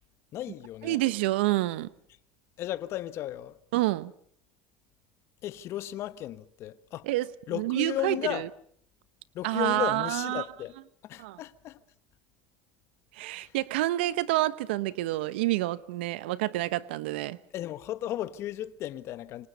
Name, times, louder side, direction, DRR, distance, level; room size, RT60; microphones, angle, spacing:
voice 1, 0.3-1.0 2.6-3.6 5.4-7.1 7.5-8.5 9.3-10.7 11.0-11.8 13.3-13.5 17.5-19.5, left 13 dB, 50° left, 1.2 m, -35 dB
voice 2, 0.8-1.9 3.7-4.1 7.1-7.2 7.5-8.5 9.4-10.4 11.2-11.4 13.1-17.4, right 17 dB, 85° right, 1.0 m, -28 dB
27.0 x 25.0 x 5.5 m
supercardioid pair, 110°, 6 cm